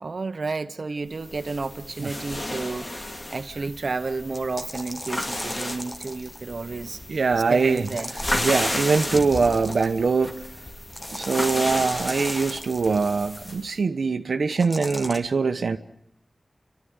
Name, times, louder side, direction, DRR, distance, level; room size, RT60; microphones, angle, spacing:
voice 1, 0.0-2.9 3.3-7.2 7.5-8.1, right 3 dB, 65° right, 1.0 m, -31 dB
sound 1, 1.2-13.7, left 1 dB, 35° left, 2.7 m, -33 dB
sound 2, 4.3-6.5 7.8-10.0 10.9-13.1 14.5-15.2, left 1 dB, 20° left, 1.8 m, -38 dB
voice 2, 7.1-7.9 8.3-10.5 11.1-15.8, right 4 dB, 85° right, 1.0 m, -23 dB
29.0 x 13.0 x 9.6 m
wide cardioid pair, 55°, 0 cm